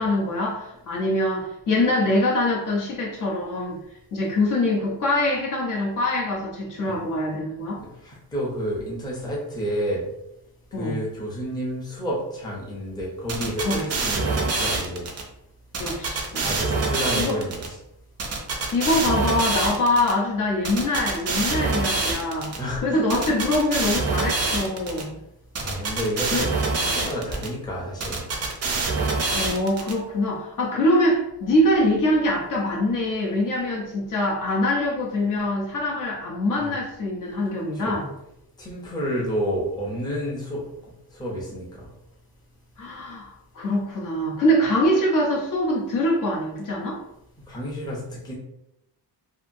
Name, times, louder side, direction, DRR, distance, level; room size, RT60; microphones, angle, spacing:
voice 1, 0.0-3.8 4.1-7.8 10.7-11.0 13.6-13.8 15.8-16.5 17.2-17.4 18.7-22.5 22.8-25.1 26.3-26.5 29.3-38.1 42.8-47.0, left 1 dB, 50° left, -2 dB, 0.7 m, -24 dB
voice 2, 8.0-10.0 10.7-15.1 16.3-17.8 22.6-23.4 25.6-28.2 36.6-36.7 37.7-38.0 38.6-40.6 41.1-41.8 47.5-48.3, equal, 10° left, -5 dB, 0.6 m, -30 dB
sound 1, 13.3-15.2 15.7-17.7 18.2-20.1 20.6-22.6 23.1-25.0 25.5-27.5 28.0-29.9, right 3 dB, 40° right, 0.4 m, -25 dB
2.8 x 2.5 x 2.6 m, 0.82 s
wide cardioid pair, 170°, 40 cm